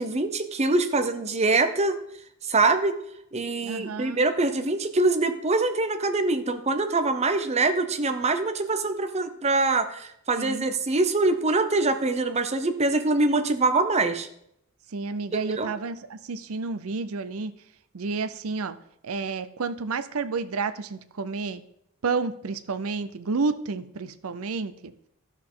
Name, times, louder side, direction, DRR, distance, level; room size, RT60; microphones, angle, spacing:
voice 1, 0.0-2.0 2.4-3.0 3.3-14.3 15.4-15.7, right 3 dB, 30° right, 8 dB, 0.7 m, -24 dB
voice 2, 3.6-4.2 10.4-10.7 14.9-17.5 17.9-18.8 19.0-21.6 22.0-25.1, right 4 dB, 80° right, 12 dB, 0.6 m, -30 dB
13.5 x 6.4 x 3.8 m, 0.75 s
head